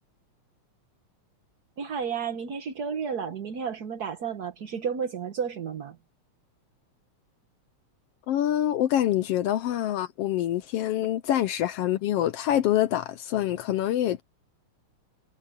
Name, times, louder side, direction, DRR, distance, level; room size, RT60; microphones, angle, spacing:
voice 1, 1.8-6.0, right 6 dB, 55° right, 1.1 m, -32 dB
voice 2, 8.3-14.2, left 12 dB, 75° left, 1.4 m, -25 dB
omnidirectional pair, 3.4 m